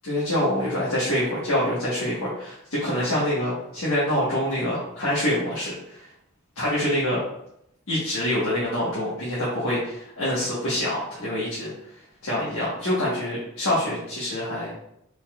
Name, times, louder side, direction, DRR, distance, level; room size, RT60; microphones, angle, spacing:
voice 1, 0.0-6.0 6.6-7.2 7.9-11.7 12.2-14.7, left 1 dB, 75° left, -8 dB, 1.3 m, -26 dB
4.7 x 4.1 x 2.4 m, 0.77 s
head